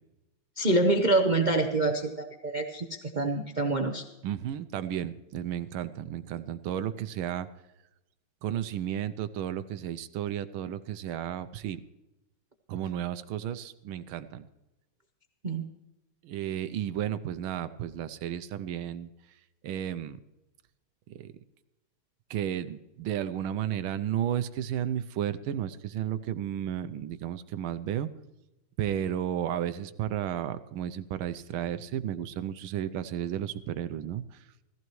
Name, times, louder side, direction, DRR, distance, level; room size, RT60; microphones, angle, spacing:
voice 1, 0.6-4.0 15.4-15.7, right 2 dB, 60° right, 4 dB, 0.5 m, -26 dB
voice 2, 4.2-7.5 8.4-11.8 12.7-14.5 16.2-19.1 19.6-20.2 21.2-21.3 22.3-28.1 28.8-34.4, right 10 dB, 80° right, 12 dB, 1.5 m, -33 dB
16.5 x 15.0 x 3.1 m, 0.95 s
omnidirectional pair, 2.3 m